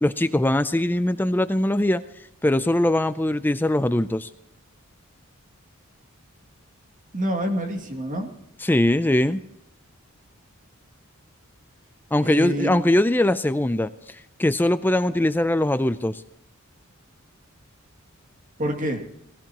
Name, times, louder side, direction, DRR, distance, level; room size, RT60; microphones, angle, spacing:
voice 1, 0.0-2.0 2.4-4.3 8.6-9.4 12.1-16.2, left 1 dB, 10° left, 12 dB, 0.4 m, -21 dB
voice 2, 7.1-8.3 12.2-12.7 18.6-19.0, right 1 dB, 40° right, 2 dB, 2.4 m, -27 dB
18.5 x 18.5 x 3.0 m, 0.80 s
head